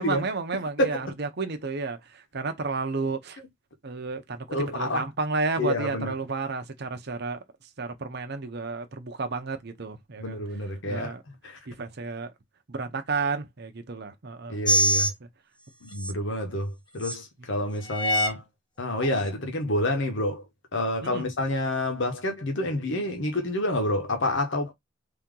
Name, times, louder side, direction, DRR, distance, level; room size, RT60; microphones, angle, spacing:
voice 1, 0.0-3.4 3.8-7.4 7.8-10.4 10.9-11.2 11.7-12.3 12.7-14.6 21.0-21.3, right 4 dB, 55° right, 0.7 m, -32 dB
voice 2, 4.5-5.0 5.6-6.1 10.2-11.6 14.5-15.1 15.8-18.4 18.8-20.5 20.7-24.7, left 1 dB, 60° left, 1.1 m, -28 dB
sound 1, 14.7-15.1 15.9-16.1 17.0-17.1 17.9-18.3 19.0-19.1, left 1 dB, 20° left, 1.0 m, -23 dB
3.5 x 2.9 x 3.7 m
head